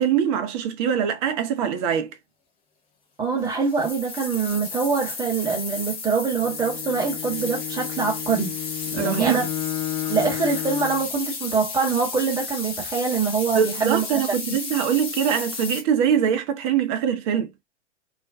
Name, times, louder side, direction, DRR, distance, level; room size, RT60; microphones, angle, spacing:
voice 1, 0.0-2.1 8.9-9.5 13.5-17.5, right 8 dB, 30° right, 0.6 m, -23 dB
voice 2, 3.2-8.6 8.9-9.5 10.1-14.0 14.5-14.6, right 5 dB, 10° right, 1.0 m, -24 dB
sound 1, 3.4-15.8, left 4 dB, 15° left, 0.4 m, -33 dB
Bowed string instrument, 6.4-11.1, left 15 dB, 40° left, 0.9 m, -32 dB
2.3 x 2.2 x 2.5 m
figure-of-eight pair, 105°, 35 cm